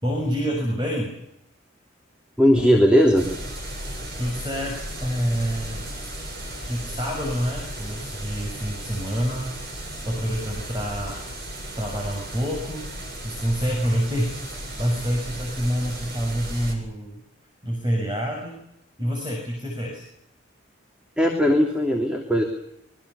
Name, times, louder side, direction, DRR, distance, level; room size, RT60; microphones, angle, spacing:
voice 1, 0.0-1.2 4.2-5.9 6.7-9.5 10.0-11.2 11.7-12.9 13.2-17.2 17.6-18.6 19.0-20.0, equal, 25° right, 0 dB, 6.6 m, -27 dB
voice 2, 2.4-3.4 21.2-22.4, equal, 5° right, 2 dB, 3.1 m, -18 dB
sound 1, 3.2-16.8, right 1 dB, 55° right, 7.7 m, -35 dB
26.5 x 24.0 x 7.0 m, 0.78 s
head